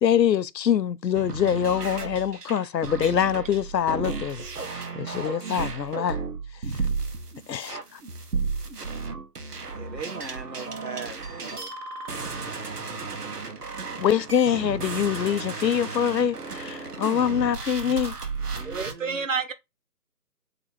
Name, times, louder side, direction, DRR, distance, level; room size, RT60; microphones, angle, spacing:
voice 1, 0.0-4.4 4.7-6.2 7.5-8.0 14.0-18.2, left 9 dB, 85° left, 0.6 m, -24 dB
sound 1, 1.1-18.9, right 4 dB, 70° right, 1.2 m, -34 dB
voice 2, 9.7-11.7 18.5-19.3, right 4 dB, 85° right, 1.3 m, -40 dB
voice 3, 18.6-19.5, right 5 dB, 50° right, 0.7 m, -29 dB
3.8 x 2.9 x 4.3 m
figure-of-eight pair, 155°, 49 cm